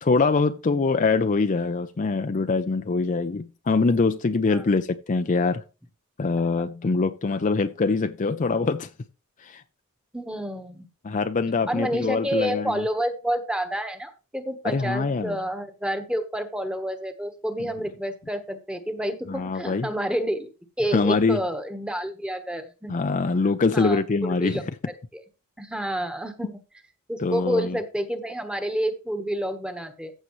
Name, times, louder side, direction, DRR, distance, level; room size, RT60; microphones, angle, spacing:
voice 1, 0.0-5.6 6.2-8.9 9.4-9.6 11.0-12.8 14.6-15.4 19.3-19.9 20.9-21.4 22.9-24.6 27.2-27.8, left 4 dB, 35° left, 0.5 m, -23 dB
voice 2, 10.1-10.9 11.7-22.9 23.7-24.6 25.1-25.2 25.6-26.6 27.1-30.1, equal, 5° right, 1.2 m, -29 dB
14.5 x 6.6 x 3.1 m
head